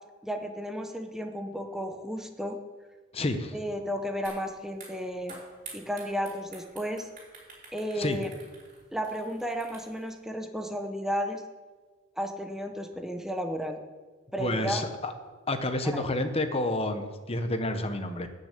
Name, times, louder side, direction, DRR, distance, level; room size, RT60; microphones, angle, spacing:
voice 1, 0.2-2.6 3.5-5.4 5.7-7.1 7.7-8.3 8.9-11.4 12.2-13.8 14.3-14.8 15.8-16.1, equal, ahead, 4 dB, 0.8 m, -33 dB
voice 2, 3.1-3.5 8.0-8.2 14.4-15.1 15.5-18.3, left 1 dB, 30° left, 8 dB, 0.9 m, -29 dB
sound 1, 4.2-4.4 4.7-10.1, right 4 dB, 40° right, 4.7 m, -48 dB
13.0 x 6.6 x 8.3 m, 1.4 s
head